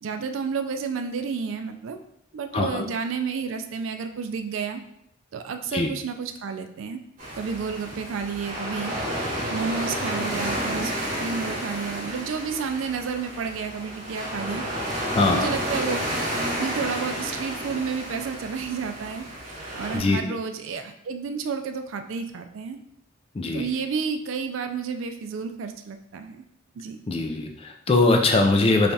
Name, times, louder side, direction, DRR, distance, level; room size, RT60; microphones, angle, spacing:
voice 1, 0.0-2.0 2.3-4.8 5.3-7.0 7.3-8.9 9.2-10.9 11.2-14.6 14.9-16.0 16.6-22.8 23.5-26.4 26.8-27.0, right 5 dB, 75° right, 7 dB, 0.4 m, -31 dB
voice 2, 2.5-2.9 5.7-5.9 15.1-15.5 19.9-20.2 23.4-23.6 27.1-28.9, left 2 dB, 30° left, 3 dB, 0.3 m, -21 dB
sound 1, 7.2-20.0, equal, 40° right, 1.3 m, -31 dB
3.3 x 2.3 x 4.0 m, 0.74 s
head